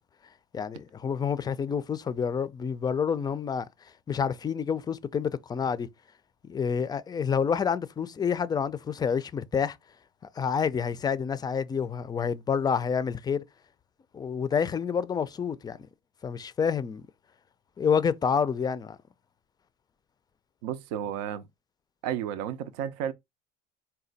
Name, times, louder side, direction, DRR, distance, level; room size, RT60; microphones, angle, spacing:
voice 1, 0.5-3.7 4.1-5.9 6.5-9.8 10.4-13.4 14.1-15.8 16.2-17.0 17.8-19.0, left 6 dB, 20° left, 0.4 m, -28 dB
voice 2, 20.6-21.4 22.0-23.1, right 9 dB, 85° right, 0.5 m, -32 dB
4.1 x 2.2 x 3.9 m
supercardioid pair, 100°, 20 cm